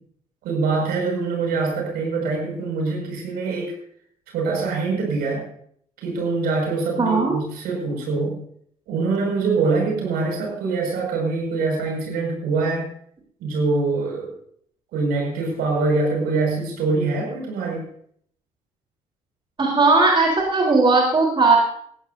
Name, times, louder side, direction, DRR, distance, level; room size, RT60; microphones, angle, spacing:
voice 1, 0.4-3.7 4.3-5.5 6.0-8.4 8.9-12.9 13.4-14.4 14.9-17.9, right 3 dB, 60° right, 0 dB, 5.9 m, -24 dB
voice 2, 7.0-7.3 19.6-21.6, right 3 dB, 25° right, -2 dB, 3.8 m, -17 dB
19.5 x 15.0 x 2.7 m, 0.65 s
figure-of-eight pair, 50°, 18 cm